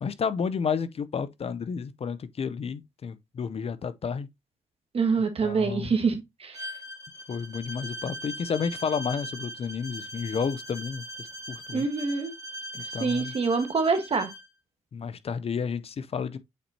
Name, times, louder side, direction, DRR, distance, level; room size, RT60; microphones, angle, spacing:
voice 1, 0.0-4.3 5.4-5.9 7.3-11.9 12.9-13.3 14.9-16.4, left 6 dB, 50° left, 0.6 m, -31 dB
voice 2, 4.9-6.7 11.7-12.3 13.0-14.3, right 4 dB, 45° right, 1.4 m, -26 dB
Bowed string instrument, 6.5-14.5, right 1 dB, 25° right, 2.0 m, -40 dB
8.3 x 4.3 x 2.7 m
supercardioid pair, 55°, 13 cm